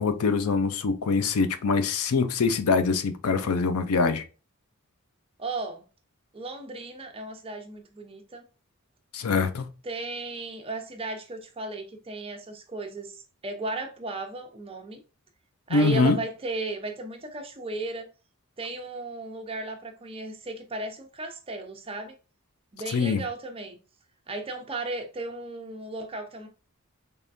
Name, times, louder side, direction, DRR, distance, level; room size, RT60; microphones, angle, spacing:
voice 1, 0.0-4.2 9.1-9.7 15.7-16.2 22.9-23.2, left 4 dB, 85° left, 0.5 m, -24 dB
voice 2, 5.4-5.8 6.3-8.4 9.8-15.0 15.7-18.1 18.6-22.2 22.7-23.8 24.3-26.5, right 2 dB, 25° right, 0.6 m, -35 dB
3.5 x 3.3 x 2.5 m
head